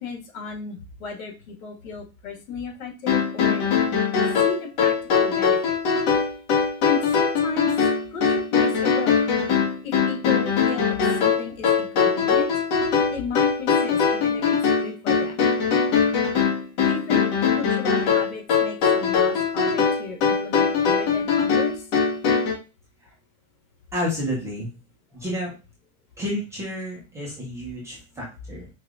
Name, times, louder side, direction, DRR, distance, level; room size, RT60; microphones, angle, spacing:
voice 1, 0.0-3.7 4.4-5.8 6.8-7.7 8.1-9.2 9.8-12.5 13.1-14.5 14.8-15.4 16.8-17.3 17.6-21.8, left 5 dB, 75° left, 1 dB, 1.7 m, -34 dB
sound 1, 3.1-22.5, left 6 dB, 50° left, 1.4 m, -21 dB
voice 2, 23.9-24.7 25.1-25.5 26.2-28.7, equal, 5° right, -4 dB, 0.5 m, -30 dB
4.6 x 3.1 x 2.4 m, 0.29 s
supercardioid pair, 160°, 43 cm